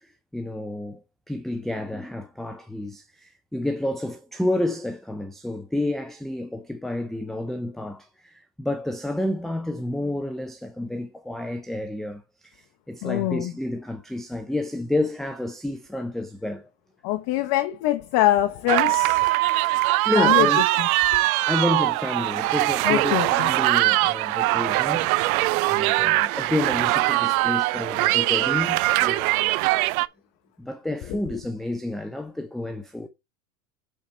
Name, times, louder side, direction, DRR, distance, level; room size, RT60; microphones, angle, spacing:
voice 1, 0.3-16.7 19.9-20.6 21.4-25.1 25.7-29.3 30.6-33.1, left 1 dB, ahead, 0.6 m, -30 dB
voice 2, 13.0-13.5 17.0-19.3 20.2-21.2 22.8-23.5, left 14 dB, 50° left, 1.0 m, -24 dB
sound 1, 18.7-30.1, right 20 dB, 65° right, 0.6 m, -22 dB
8.1 x 4.6 x 4.4 m
hypercardioid pair, 95°, 47 cm